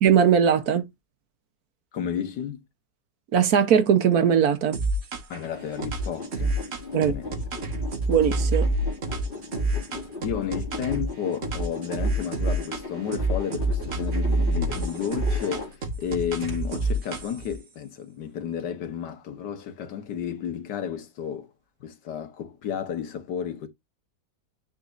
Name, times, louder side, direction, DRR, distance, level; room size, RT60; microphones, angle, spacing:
voice 1, 0.0-0.8 3.3-4.8 6.9-7.1 8.1-8.7, right 8 dB, 60° right, 1.4 m, -20 dB
voice 2, 1.9-2.7 5.3-6.6 6.9-7.3 9.7-15.7 16.0-21.5 21.8-23.7, left 8 dB, 75° left, 1.8 m, -32 dB
sound 1, 4.7-5.5 5.8-11.1 11.4-12.9 13.1-17.6, right 1 dB, 40° right, 1.3 m, -27 dB
sound 2, 5.5-16.0 16.4-16.5, left 3 dB, 30° left, 2.9 m, -38 dB
9.7 x 4.1 x 2.5 m
omnidirectional pair, 1.9 m